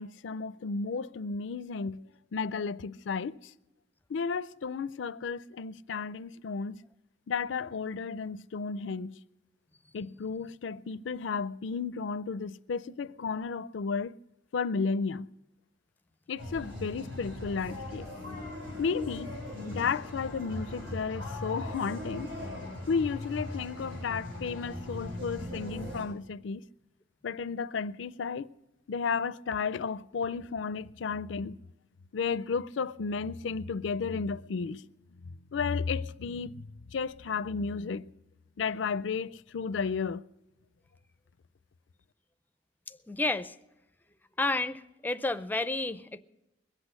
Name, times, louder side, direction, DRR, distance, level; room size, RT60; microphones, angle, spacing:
voice 1, 0.0-2.0 2.3-3.4 4.1-6.8 7.3-9.1 9.9-14.2 14.5-15.3 16.3-18.1 18.8-19.3 19.7-22.3 22.9-26.6 27.2-28.5 28.9-31.6 32.1-34.9 35.5-36.6 36.9-38.1 38.6-40.2, left 5 dB, 75° left, 0.4 m, -33 dB
sound 1, 16.4-26.0, left 1 dB, 90° right, 7.7 m, -39 dB
voice 2, 42.9-43.5 44.4-46.2, left 2 dB, 10° left, 0.5 m, -31 dB
21.5 x 8.2 x 6.4 m
head